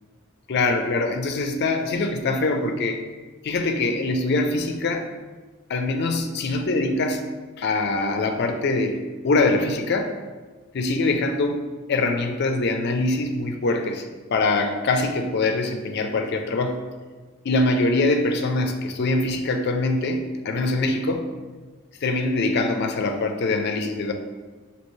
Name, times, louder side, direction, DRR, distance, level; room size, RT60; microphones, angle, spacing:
voice 1, 0.5-3.0 3.4-5.0 5.7-7.2 7.6-9.0 9.2-10.1 10.7-11.6 11.9-16.8 17.4-21.2 22.0-24.1, left 2 dB, 50° left, 5 dB, 0.4 m, -23 dB
5.3 x 2.8 x 3.1 m, 1.3 s
head